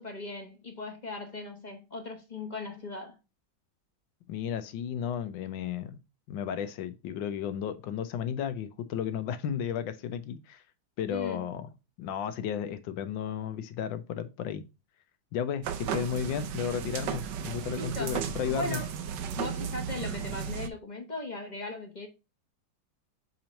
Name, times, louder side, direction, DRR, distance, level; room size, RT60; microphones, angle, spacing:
voice 1, 0.0-3.1 11.1-11.4 17.7-18.2 18.5-18.9 19.3-22.1, left 2 dB, 30° left, 0.9 m, -38 dB
voice 2, 4.3-6.0 6.3-10.6 11.0-11.7 12.0-14.6 15.3-18.8, left 8 dB, 85° left, 1.4 m, -33 dB
sound 1, 15.6-20.7, right 8 dB, 75° right, 1.3 m, -34 dB
6.6 x 3.0 x 5.1 m
omnidirectional pair, 2.0 m